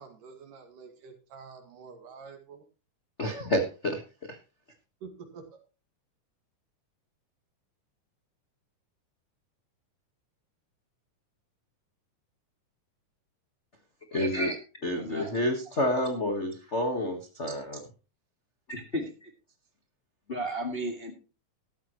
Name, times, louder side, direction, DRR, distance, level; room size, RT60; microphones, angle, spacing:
voice 1, 0.0-2.7 5.0-5.6, right 5 dB, 75° right, 5 dB, 3.7 m, -48 dB
voice 2, 3.2-4.0 4.3-4.4 14.1-17.8, left 1 dB, 55° left, 5 dB, 0.7 m, -29 dB
voice 3, 14.9-15.3 18.7-19.1 20.3-21.1, equal, 25° left, 3 dB, 1.4 m, -33 dB
14.0 x 12.5 x 3.1 m, 0.32 s
omnidirectional pair, 3.8 m